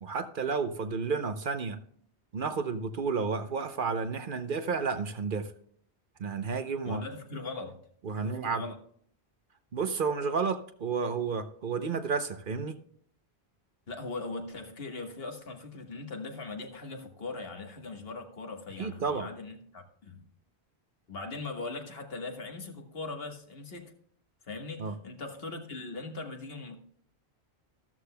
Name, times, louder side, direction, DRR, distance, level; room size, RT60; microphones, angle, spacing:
voice 1, 0.0-1.8 2.3-5.5 6.2-7.0 8.0-8.6 9.7-12.8 18.8-19.3 24.8-24.9, right 5 dB, 55° right, 0.8 m, -31 dB
voice 2, 6.8-7.8 8.1-8.8 13.9-20.2 21.1-23.9 24.4-26.8, left 3 dB, 60° left, 1.6 m, -40 dB
13.5 x 13.0 x 2.2 m
omnidirectional pair, 1.1 m